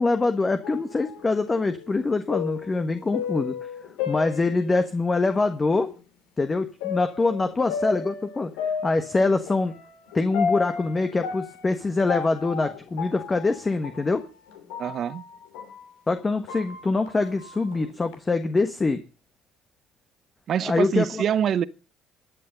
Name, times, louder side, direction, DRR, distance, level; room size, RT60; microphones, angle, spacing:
voice 1, 0.0-3.5 4.1-5.9 6.4-8.5 8.8-9.8 10.1-14.2 16.1-19.0 20.6-21.2, left 3 dB, 25° left, 1.4 m, -24 dB
sound 1, 0.6-5.2 5.7-5.8 6.8-15.8 16.2-18.1, left 6 dB, 80° left, 2.9 m, -34 dB
voice 2, 14.8-15.2 20.5-21.6, right 9 dB, 55° right, 0.8 m, -25 dB
14.0 x 9.0 x 5.3 m
hypercardioid pair, 60°, 0 cm